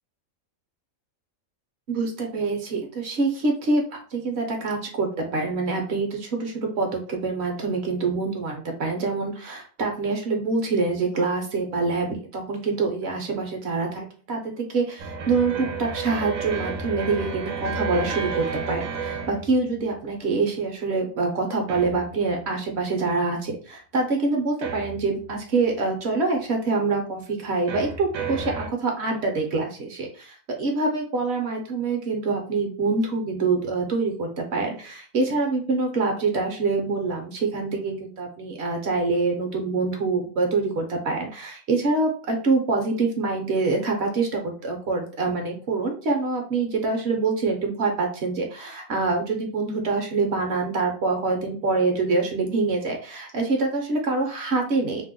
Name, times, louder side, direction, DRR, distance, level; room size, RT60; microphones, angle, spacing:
voice 1, 1.9-3.8 4.1-55.0, right 3 dB, 60° right, 2 dB, 0.9 m, -25 dB
sound 1, 15.0-20.1 21.7-22.4 24.6-25.4 27.7-28.7, right 5 dB, 85° right, 1.0 m, -32 dB
2.7 x 2.1 x 3.6 m, 0.41 s
omnidirectional pair, 1.4 m